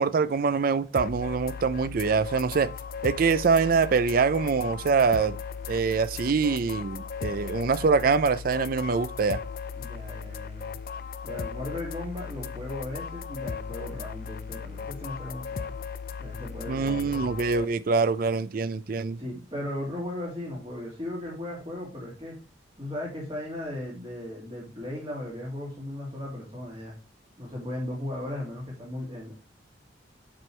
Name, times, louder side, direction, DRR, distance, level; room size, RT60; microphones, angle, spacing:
voice 1, 0.0-2.7 3.0-5.4 5.7-9.4 16.7-19.2, right 5 dB, 50° right, 0.4 m, -24 dB
sound 1, 1.0-17.7, left 6 dB, 55° left, 0.4 m, -37 dB
voice 2, 9.7-10.8 11.2-15.7 16.2-17.3 19.2-22.3 22.8-26.9 27.4-29.3, left 1 dB, 30° right, 2.4 m, -36 dB
7.5 x 6.1 x 3.2 m
head